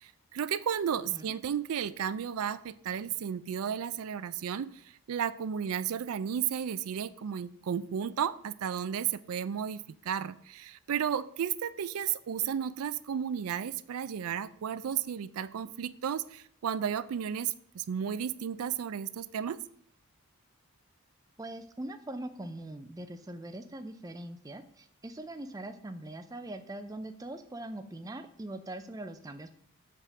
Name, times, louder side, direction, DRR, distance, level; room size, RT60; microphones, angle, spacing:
voice 1, 0.0-4.8 5.1-19.6, right 8 dB, 80° right, 15 dB, 0.4 m, -33 dB
voice 2, 21.4-29.5, right 1 dB, 15° right, 8 dB, 0.4 m, -42 dB
8.1 x 3.6 x 6.1 m, 0.63 s
head